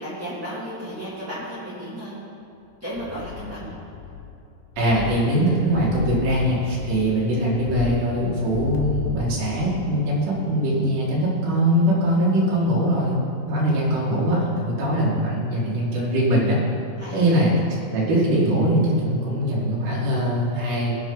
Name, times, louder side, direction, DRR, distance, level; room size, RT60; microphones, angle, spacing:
voice 1, 0.0-2.1 2.8-3.8 6.8-7.0 17.0-17.4, equal, 5° right, -12 dB, 1.4 m, -34 dB
sound 1, 2.9-4.4 4.7-10.0 10.3-10.4, left 7 dB, 70° left, 1.9 m, -33 dB
voice 2, 4.8-13.2 13.5-16.6 17.1-17.5 17.9-21.0, right 1 dB, 80° right, -6 dB, 4.2 m, -22 dB
21.0 x 7.2 x 3.9 m, 2.7 s
omnidirectional pair, 4.8 m